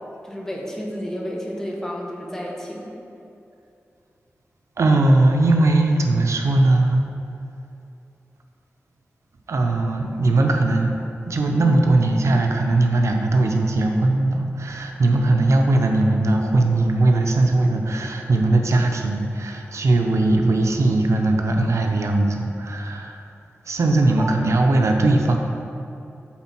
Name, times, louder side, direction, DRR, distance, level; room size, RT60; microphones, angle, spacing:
voice 1, 0.2-3.0 24.2-24.3, equal, 10° left, -2 dB, 1.2 m, -31 dB
voice 2, 4.8-7.0 9.5-11.0 11.3-23.2 23.7-25.4, right 2 dB, 80° right, 3 dB, 0.7 m, -19 dB
8.6 x 3.8 x 5.9 m, 2.7 s
wide cardioid pair, 90°, 5 cm